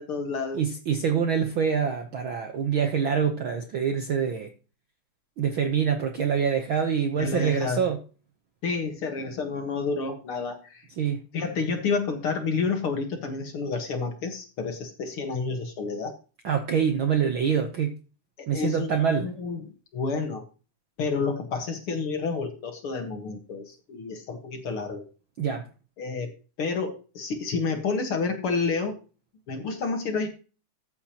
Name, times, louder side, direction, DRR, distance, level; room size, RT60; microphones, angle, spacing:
voice 1, 0.0-0.6 7.2-7.8 8.6-10.9 11.3-16.2 18.4-20.4 21.0-25.0 26.0-26.3 26.6-29.0 29.5-30.3, left 4 dB, 50° left, 2.2 m, -30 dB
voice 2, 0.5-4.5 5.4-8.0 11.0-11.2 16.4-18.0 18.5-19.3 25.4-25.7, right 7 dB, 65° right, 1.3 m, -25 dB
14.0 x 8.7 x 3.0 m
omnidirectional pair, 3.5 m